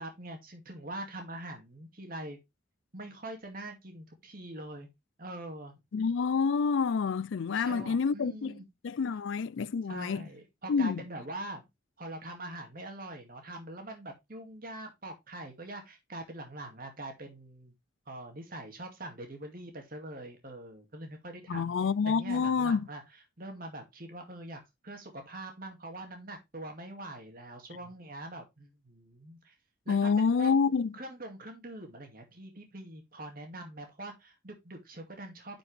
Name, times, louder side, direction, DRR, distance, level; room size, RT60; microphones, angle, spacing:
voice 1, 0.0-2.4 2.9-4.9 5.2-5.7 7.5-8.7 9.9-11.7 12.0-17.7 18.1-21.7 22.1-23.0 23.4-29.5 29.9-30.5 30.9-35.6, right 1 dB, 45° right, 2.2 m, -43 dB
voice 2, 5.9-10.2 10.7-11.0 21.5-22.9 29.9-30.9, left 5 dB, 70° left, 0.4 m, -28 dB
9.9 x 5.2 x 3.3 m
head